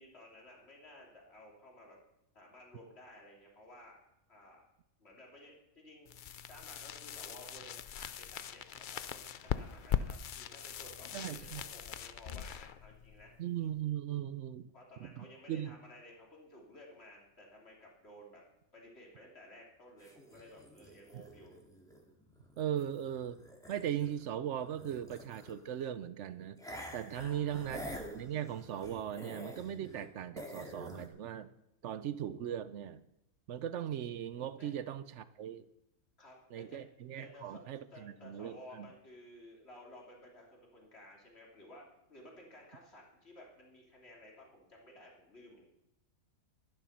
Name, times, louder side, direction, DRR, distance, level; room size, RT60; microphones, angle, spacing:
voice 1, 0.0-2.0 2.3-4.0 4.3-4.6 5.0-6.1 6.5-13.3 14.7-18.4 18.7-21.5 27.1-27.7 34.6-34.7 36.2-36.8 37.2-45.7, left 1 dB, 45° left, -2 dB, 3.3 m, -55 dB
sound 1, 6.1-13.8, left 9 dB, 85° left, 0.4 m, -41 dB
voice 2, 11.1-11.6 13.4-14.7 15.0-15.7 22.6-23.4 23.7-26.6 26.9-31.5 31.8-33.0 33.5-35.7 36.5-38.9, right 10 dB, 65° right, 14 dB, 0.8 m, -38 dB
sound 2, 20.0-24.2 24.5-25.8 26.6-30.1 30.4-31.1, equal, 5° left, 2.0 m, -48 dB
12.0 x 11.0 x 5.9 m, 0.85 s
omnidirectional pair, 1.5 m